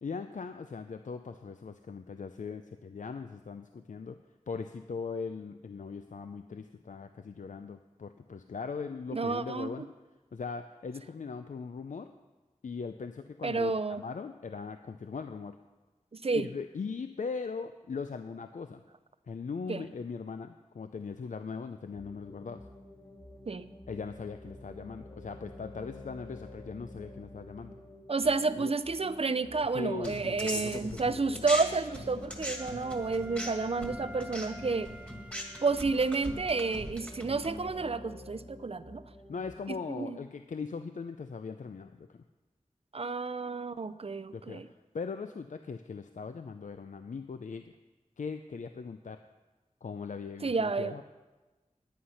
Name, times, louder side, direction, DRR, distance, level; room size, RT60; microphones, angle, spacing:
voice 1, 0.0-4.2 4.5-9.9 10.3-12.1 12.6-15.6 16.3-18.8 19.3-22.6 23.9-27.7 28.6-28.7 29.7-31.5 39.3-42.2 44.3-44.6 44.9-47.6 48.2-49.2 49.8-51.0, left 5 dB, 80° left, 9 dB, 0.5 m, -40 dB
voice 2, 9.1-9.7 13.4-14.0 16.1-16.5 19.7-19.8 23.5-23.7 28.1-34.9 35.6-39.0 39.7-40.2 42.9-44.7 50.4-50.9, right 4 dB, 50° right, 14 dB, 0.5 m, -30 dB
sound 1, 21.9-39.6, left 1 dB, 25° left, 2.8 m, -49 dB
sound 2, 30.0-31.6 31.9-37.7, equal, 10° left, 1.9 m, -40 dB
Wind instrument woodwind instrument, 32.6-36.9, equal, 10° right, 0.6 m, -49 dB
11.5 x 9.5 x 5.7 m, 1.2 s
wide cardioid pair, 60°, 13 cm